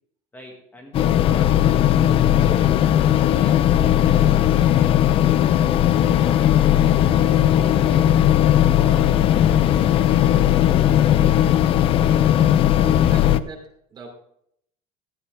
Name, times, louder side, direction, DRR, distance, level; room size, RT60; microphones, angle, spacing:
voice 1, 0.3-8.0 8.7-9.2, left 1 dB, 10° left, 1 dB, 1.5 m, -42 dB
sound 1, 0.9-13.4, left 11 dB, 40° left, 0.4 m, -17 dB
voice 2, 13.0-14.1, right 4 dB, 30° right, 0 dB, 2.9 m, -41 dB
13.0 x 9.5 x 3.4 m, 0.72 s
cardioid pair, 155°, 15 cm